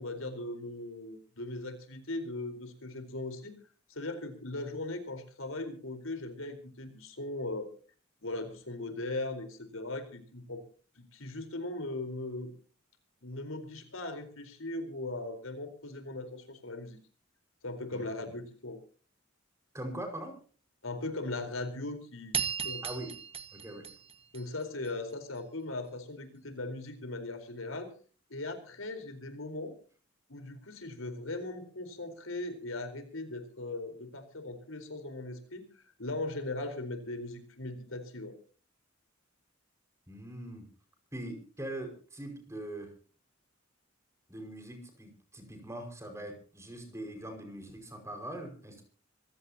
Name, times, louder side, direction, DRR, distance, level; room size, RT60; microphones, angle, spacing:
voice 1, 0.0-3.5 3.9-7.7 8.2-10.6 10.9-12.5 13.2-17.0 17.6-18.8 20.8-22.4 22.6-22.8 24.3-27.9 28.3-29.7 30.3-38.3, left 2 dB, 90° left, 7 dB, 4.3 m, -39 dB
voice 2, 19.7-20.4 22.8-23.2 23.5-23.9 40.1-40.7 41.1-42.9 44.3-48.8, right 1 dB, 15° right, 4 dB, 5.4 m, -42 dB
sound 1, 22.3-24.9, right 7 dB, 30° right, 1.4 m, -36 dB
25.5 x 16.5 x 2.9 m, 0.40 s
head